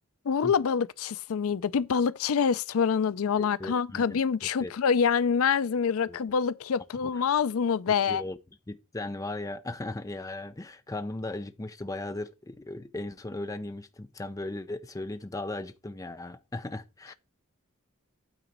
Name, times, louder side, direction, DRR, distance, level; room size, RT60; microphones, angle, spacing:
voice 1, 0.3-8.2, left 6 dB, 70° left, 0.4 m, -26 dB
voice 2, 3.4-4.2 4.6-4.7 6.1-6.2 7.0-7.1 7.9-8.4 8.7-17.1, left 2 dB, 15° left, 0.5 m, -37 dB
8.9 x 4.0 x 6.1 m
head